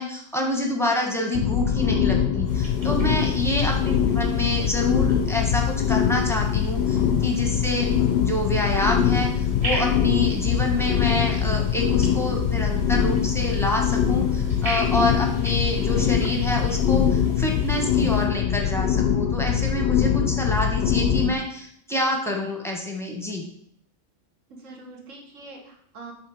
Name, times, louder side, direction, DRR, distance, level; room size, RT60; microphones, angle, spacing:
voice 1, 0.0-23.5, left 1 dB, ahead, 0 dB, 0.9 m, -27 dB
sound 1, 1.3-21.3, left 8 dB, 60° left, 0.7 m, -23 dB
sound 2, 2.5-18.3, right 1 dB, 25° right, 1.6 m, -40 dB
voice 2, 3.6-3.9 24.5-26.1, right 3 dB, 70° right, 0 dB, 1.7 m, -43 dB
7.4 x 3.2 x 4.9 m, 0.67 s
omnidirectional pair, 1.4 m